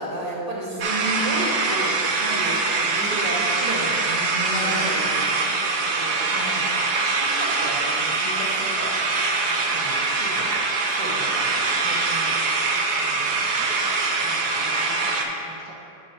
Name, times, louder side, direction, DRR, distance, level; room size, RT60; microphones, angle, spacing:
voice 1, 0.0-6.6 7.2-8.9 9.7-10.5 10.8-12.3 12.9-13.7, right 1 dB, 25° right, -7 dB, 1.3 m, -33 dB
sound 1, 0.8-15.3, right 3 dB, 70° right, 1.2 m, -23 dB
voice 2, 4.6-5.8 9.4-9.6 12.1-12.4 14.2-15.8, right 1 dB, 15° left, -7 dB, 0.9 m, -42 dB
10.5 x 5.0 x 3.0 m, 2.8 s
omnidirectional pair, 1.9 m